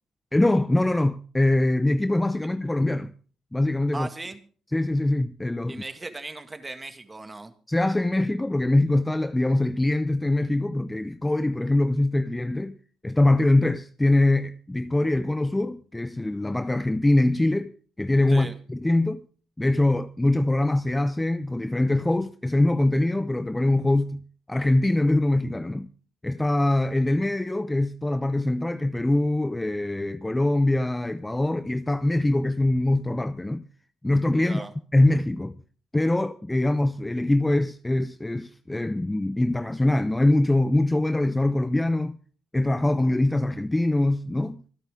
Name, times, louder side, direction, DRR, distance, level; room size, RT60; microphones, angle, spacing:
voice 1, 0.3-3.1 3.5-4.1 4.7-5.8 7.7-12.8 13.0-19.2 19.6-24.2 24.5-25.9 26.2-33.6 34.0-34.7 34.9-35.6 35.9-42.2 42.5-44.6, left 1 dB, 10° left, 0.7 m, -23 dB
voice 2, 3.9-4.4 5.7-7.5 18.3-18.6 34.4-34.7, right 2 dB, 20° right, 2.0 m, -37 dB
25.5 x 9.0 x 3.7 m
cardioid pair, 90°, 0 cm